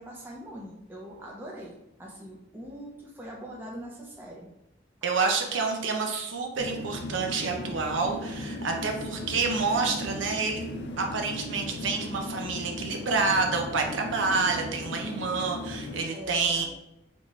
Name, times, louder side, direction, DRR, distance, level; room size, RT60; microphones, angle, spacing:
voice 1, 0.0-4.5 9.3-9.5 14.3-14.5 16.1-16.7, equal, 10° right, -4 dB, 0.6 m, -42 dB
voice 2, 5.0-10.7 11.0-16.7, right 4 dB, 85° right, 3 dB, 0.5 m, -28 dB
sound 1, 6.6-16.0, left 1 dB, 65° left, 0.4 m, -37 dB
3.5 x 2.5 x 3.2 m, 0.85 s
head